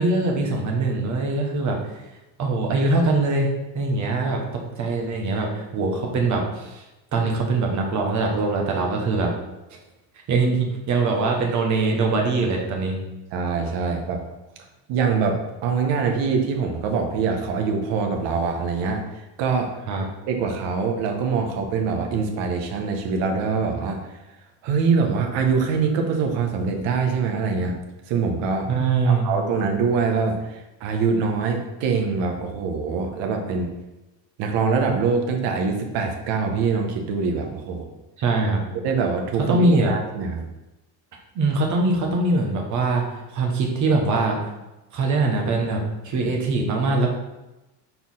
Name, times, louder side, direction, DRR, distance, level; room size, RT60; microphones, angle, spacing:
voice 1, 0.0-1.8 2.4-4.4 4.8-6.8 7.1-9.3 10.3-13.0 19.9-20.1 28.7-29.3 38.2-38.6 39.5-39.9 41.3-43.0 43.3-44.4 44.9-47.1, right 3 dB, 40° right, 1 dB, 1.4 m, -22 dB
voice 2, 13.3-14.2 14.9-15.4 15.6-19.7 20.3-24.0 24.6-27.8 28.1-28.7 29.0-33.7 34.4-37.9 38.8-40.4, right 5 dB, 70° right, 3 dB, 1.3 m, -24 dB
4.4 x 4.3 x 5.5 m, 1.0 s
cardioid pair, 160°, 45 cm